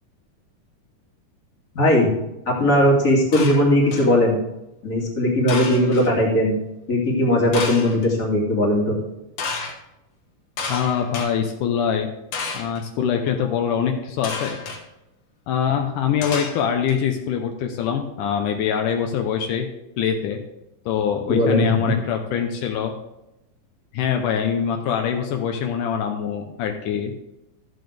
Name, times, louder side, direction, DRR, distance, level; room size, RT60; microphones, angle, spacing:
voice 1, 1.7-2.1 2.5-4.4 4.8-6.5 6.9-9.0 21.3-21.9, left 1 dB, 25° left, -4 dB, 2.7 m, -18 dB
sound 1, 3.3-4.1 5.5-6.1 7.5-8.1 9.4-9.7 10.6-11.3 12.3-12.8 14.2-14.8 16.2-16.9, left 4 dB, 60° left, 2.2 m, -30 dB
voice 2, 10.7-12.1 12.5-14.6 15.5-19.7 20.0-20.4 20.9-22.9 23.9-27.1, left 8 dB, 80° left, 4 dB, 2.3 m, -24 dB
13.5 x 7.9 x 3.4 m, 0.91 s
omnidirectional pair, 3.7 m